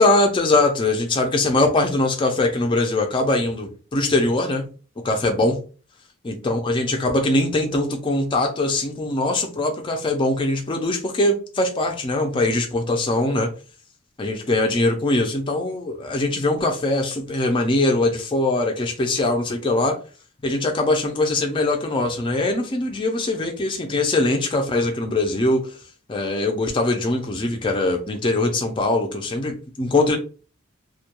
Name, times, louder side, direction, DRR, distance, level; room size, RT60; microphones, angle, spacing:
voice 1, 0.0-4.7 5.0-5.6 6.2-13.5 14.2-20.0 20.4-25.7 26.1-30.2, left 2 dB, 25° left, 3 dB, 0.4 m, -22 dB
2.2 x 2.2 x 2.8 m, 0.37 s
head